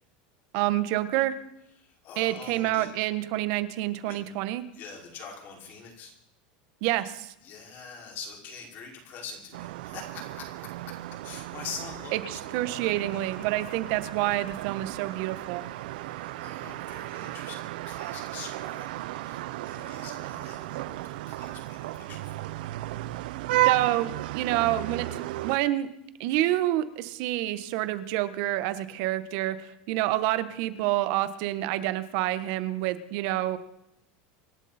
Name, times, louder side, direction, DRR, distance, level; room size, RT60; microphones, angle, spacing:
voice 1, 0.5-1.4 2.2-4.6 6.8-7.3 12.1-15.6 23.6-25.9 26.2-33.6, right 15 dB, 60° right, 12 dB, 1.4 m, -28 dB
voice 2, 1.8-2.9 4.1-4.2 4.7-6.1 7.4-11.0 11.2-12.6 16.0-22.2, left 5 dB, 45° left, 0 dB, 5.8 m, -44 dB
sound 1, 9.5-25.6, right 16 dB, 75° right, 0.7 m, -34 dB
26.5 x 12.0 x 4.4 m, 0.82 s
supercardioid pair, 140°, 5 cm